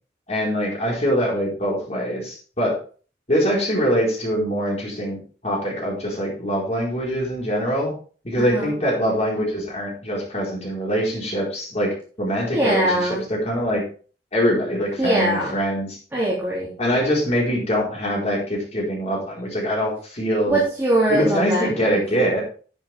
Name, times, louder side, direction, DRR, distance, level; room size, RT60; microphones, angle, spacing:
voice 1, 0.3-2.8 3.3-7.9 8.2-13.8 14.3-16.0 16.8-20.6 21.1-22.4, equal, 40° left, -3 dB, 4.6 m, -23 dB
voice 2, 8.4-8.7 12.5-13.2 15.0-15.6 16.1-16.7 20.5-21.9, right 1 dB, 15° right, -6 dB, 3.0 m, -22 dB
11.0 x 8.8 x 3.6 m, 0.40 s
head